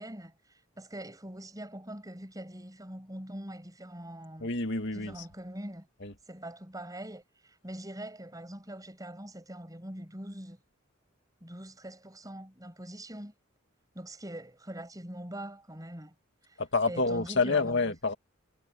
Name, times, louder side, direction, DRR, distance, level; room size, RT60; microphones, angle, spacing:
voice 1, 0.0-4.5 4.9-5.9 6.3-10.6 11.4-13.3 13.9-16.1 16.4-16.6 16.9-17.9, right 1 dB, 15° right, 7.9 m, -43 dB
voice 2, 4.4-5.3 6.0-6.1 16.6-18.1, left 3 dB, 60° left, 2.2 m, -28 dB
head